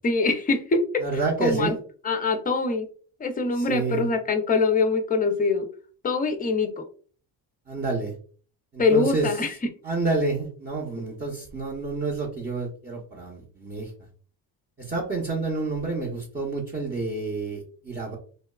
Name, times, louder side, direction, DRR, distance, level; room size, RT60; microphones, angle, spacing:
voice 1, 0.0-0.8 1.4-1.7 2.0-2.9 3.2-5.7 6.0-6.8 8.8-9.5, left 4 dB, 20° left, 7 dB, 0.4 m, -23 dB
voice 2, 1.0-1.8 3.6-4.1 7.7-8.1 8.7-9.3 9.8-13.9 14.8-18.2, right 3 dB, 20° right, -5 dB, 0.7 m, -29 dB
3.0 x 2.2 x 2.2 m, 0.42 s
cardioid pair, 100°, 44 cm